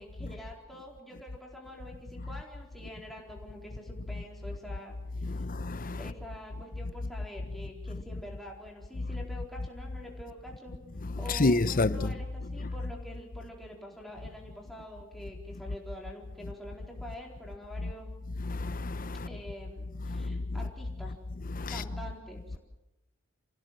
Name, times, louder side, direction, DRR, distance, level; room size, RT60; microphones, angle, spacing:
voice 1, 0.0-5.5 6.0-10.8 11.2-18.1 19.2-21.1 21.7-22.6, equal, ahead, 4.3 m, -46 dB
voice 2, 5.2-6.0 11.3-12.1 18.5-19.3 20.1-20.4 21.5-21.8, left 2 dB, 40° left, 0.8 m, -29 dB
27.5 x 16.5 x 7.7 m
head